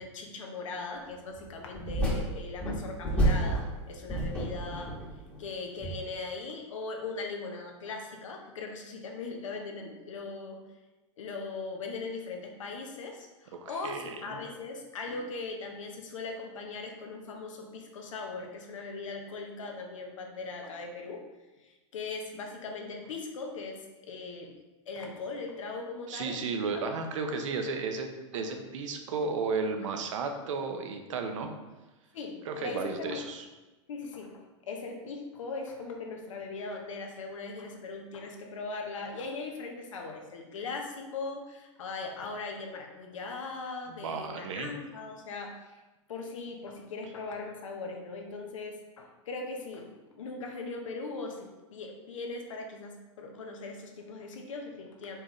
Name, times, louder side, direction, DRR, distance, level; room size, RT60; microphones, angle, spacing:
voice 1, 0.0-4.9 5.4-10.6 11.2-21.2 21.6-24.5 24.9-26.4 26.7-27.0 27.3-27.4 28.3-28.4 32.1-33.2 33.9-45.8 46.1-55.2, left 3 dB, 85° left, 2 dB, 0.8 m, -39 dB
sound 1, 1.4-1.5 1.7-3.7 4.1-5.4 5.8-6.0, right 1 dB, 10° left, 1.1 m, -29 dB
voice 2, 13.5-14.4 26.1-31.5 32.5-33.4 43.9-44.7, right 4 dB, 75° right, 5 dB, 0.7 m, -34 dB
4.4 x 3.6 x 3.1 m, 1.1 s
hypercardioid pair, 115°, 16 cm